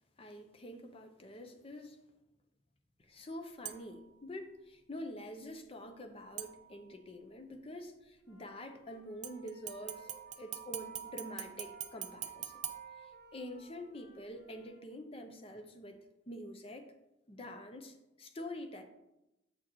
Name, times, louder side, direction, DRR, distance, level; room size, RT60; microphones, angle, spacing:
voice 1, 0.2-2.0 3.0-10.1 10.4-12.6 13.3-16.0 16.3-16.9 17.3-18.8, left 1 dB, 30° left, 6 dB, 0.6 m, -46 dB
sound 1, 3.7-4.1 6.4-7.1 9.2-13.6 14.1-14.2, right 11 dB, 40° right, 0.4 m, -45 dB
Wind instrument woodwind instrument, 8.2-14.8, right 1 dB, 60° left, 1.1 m, -61 dB
7.9 x 6.3 x 3.0 m, 0.91 s
head